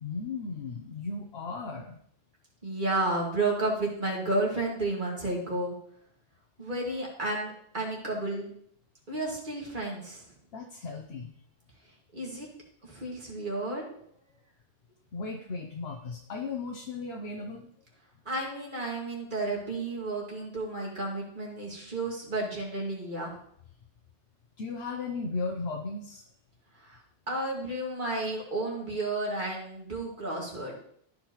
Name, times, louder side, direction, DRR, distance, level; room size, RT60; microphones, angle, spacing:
voice 1, 0.0-2.0 10.5-11.3 15.1-17.7 24.6-26.2, left 4 dB, 75° left, 1 dB, 1.1 m, -36 dB
voice 2, 2.6-5.8 6.6-8.5 9.1-10.3 12.1-12.5 12.8-14.0 18.3-23.3 26.8-27.0 27.3-30.8, right 2 dB, 50° right, -2 dB, 2.4 m, -32 dB
14.0 x 5.1 x 3.1 m, 0.67 s
omnidirectional pair, 1.0 m